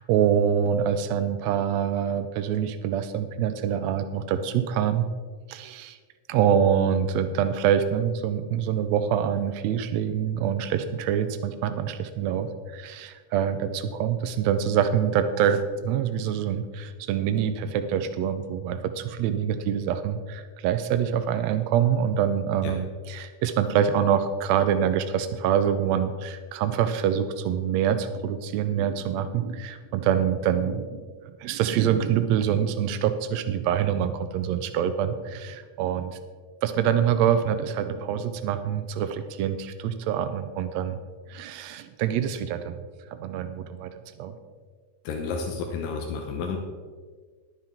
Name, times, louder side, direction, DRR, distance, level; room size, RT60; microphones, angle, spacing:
voice 1, 0.0-5.1 5.5-6.0 6.3-31.1 31.4-36.2 36.6-41.0 41.3-42.8 43.1-43.9 44.2-44.3, right 8 dB, 90° right, 10 dB, 1.5 m, -25 dB
voice 2, 45.0-46.6, left 5 dB, 85° left, 2 dB, 2.6 m, -31 dB
11.5 x 9.6 x 4.4 m, 1.5 s
omnidirectional pair, 3.8 m